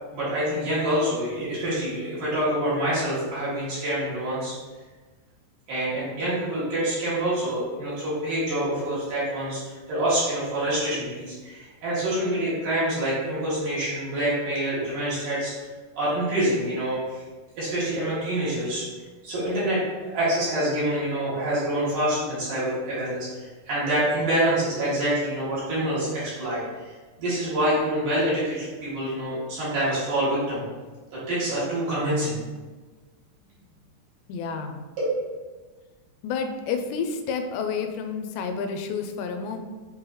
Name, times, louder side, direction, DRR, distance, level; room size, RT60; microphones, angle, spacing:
voice 1, 0.1-4.5 5.7-15.5 15.9-17.2 17.6-18.8 19.2-30.6 31.1-32.4 35.0-35.2, right 1 dB, 55° right, -10 dB, 3.3 m, -26 dB
voice 2, 34.3-34.9 36.2-39.6, left 5 dB, 85° left, 6 dB, 2.8 m, -30 dB
8.2 x 3.9 x 3.0 m, 1.3 s
omnidirectional pair, 4.9 m